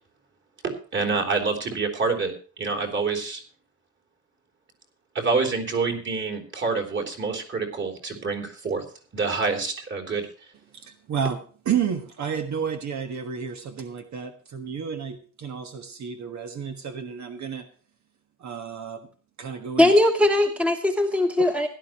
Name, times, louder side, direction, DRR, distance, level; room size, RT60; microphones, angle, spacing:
voice 1, 0.6-2.3 2.6-3.4 5.2-8.8 9.1-10.3, right 4 dB, 40° right, 4 dB, 3.5 m, -27 dB
voice 2, 10.7-11.4 11.6-17.7 18.4-19.1 19.4-19.9 21.4-21.5, right 7 dB, 70° right, 6 dB, 1.5 m, -31 dB
voice 3, 19.8-21.7, left 1 dB, 5° right, 5 dB, 1.2 m, -20 dB
16.5 x 12.0 x 3.0 m, 0.39 s
wide cardioid pair, 180°, 30 cm